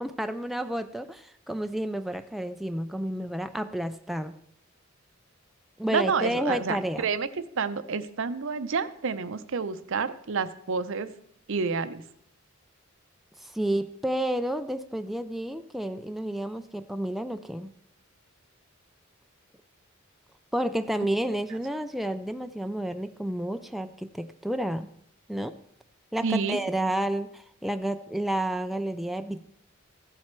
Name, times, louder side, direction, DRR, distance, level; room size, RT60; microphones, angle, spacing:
voice 1, 0.0-4.4 5.8-7.1 13.4-17.7 20.5-24.9 25.3-25.5 26.1-29.5, right 1 dB, ahead, 8 dB, 0.3 m, -30 dB
voice 2, 5.9-7.3 7.6-11.1 11.5-12.0 26.2-26.6, right 5 dB, 65° right, 13 dB, 0.6 m, -29 dB
14.5 x 7.4 x 4.5 m, 0.71 s
head